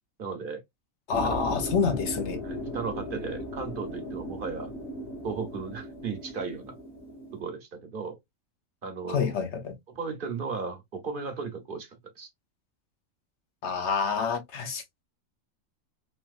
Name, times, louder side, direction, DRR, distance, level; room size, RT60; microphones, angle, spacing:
voice 1, 0.2-0.6 1.1-1.4 2.4-4.7 5.2-6.8 7.3-8.2 8.8-9.3 9.9-12.3, right 5 dB, 45° right, 1.0 m, -35 dB
voice 2, 1.1-2.4 9.1-9.7 13.6-14.8, left 6 dB, 60° left, 1.0 m, -27 dB
sound 1, 1.1-7.4, left 1 dB, 45° left, 1.4 m, -37 dB
3.2 x 2.9 x 2.4 m
omnidirectional pair, 1.4 m